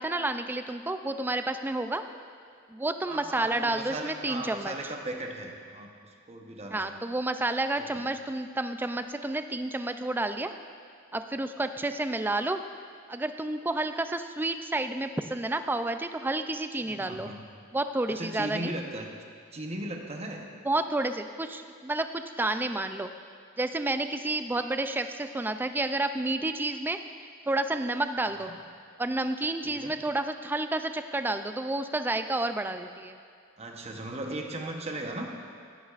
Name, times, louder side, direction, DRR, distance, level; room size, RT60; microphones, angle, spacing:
voice 1, 0.0-2.0 2.7-4.7 6.7-10.5 11.1-12.6 13.1-17.3 17.7-18.7 20.7-23.1 23.6-27.0 27.5-28.5 29.0-33.2, right 2 dB, 10° right, 8 dB, 0.3 m, -30 dB
voice 2, 3.1-6.9 7.8-7.9 16.8-17.4 18.1-19.1 19.5-20.5 28.2-28.6 29.6-29.9 33.6-35.3, right 1 dB, 30° right, 2 dB, 0.9 m, -37 dB
16.5 x 9.4 x 2.5 m, 2.2 s
head